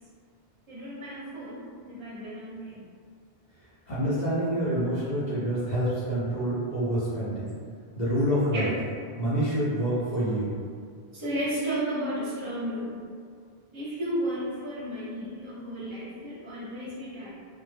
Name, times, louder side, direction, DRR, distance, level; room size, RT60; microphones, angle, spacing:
voice 1, 0.7-2.8 8.5-8.7 11.1-13.0 13.7-17.3, right 1 dB, 30° right, -8 dB, 0.7 m, -33 dB
voice 2, 3.9-7.6 7.9-8.7 9.2-10.5, equal, 50° left, -11 dB, 0.7 m, -27 dB
2.0 x 2.0 x 3.2 m, 2.1 s
omnidirectional pair, 1.0 m